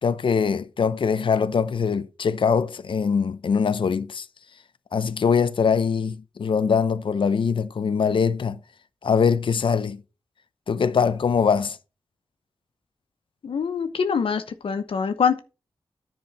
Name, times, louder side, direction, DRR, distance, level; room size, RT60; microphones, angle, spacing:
voice 1, 0.0-4.3 4.9-8.6 9.0-10.0 10.7-11.8, left 6 dB, 65° left, 0.7 m, -22 dB
voice 2, 13.4-15.4, left 6 dB, 90° left, 0.9 m, -24 dB
10.0 x 4.5 x 6.0 m
wide cardioid pair, 125°, 9 cm